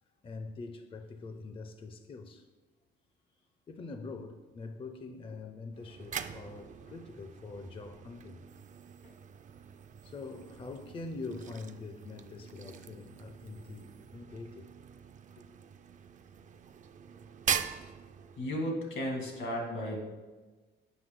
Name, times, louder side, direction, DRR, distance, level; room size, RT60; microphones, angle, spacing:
voice 1, 0.2-2.5 3.7-8.4 10.0-14.7 15.4-15.5, left 3 dB, 25° left, 0.5 m, -44 dB
sound 1, 5.7-18.7, right 8 dB, 40° right, 0.4 m, -42 dB
voice 2, 18.4-20.0, equal, 80° left, 2.0 m, -34 dB
7.9 x 5.4 x 3.6 m
cardioid pair, 90°, 20 cm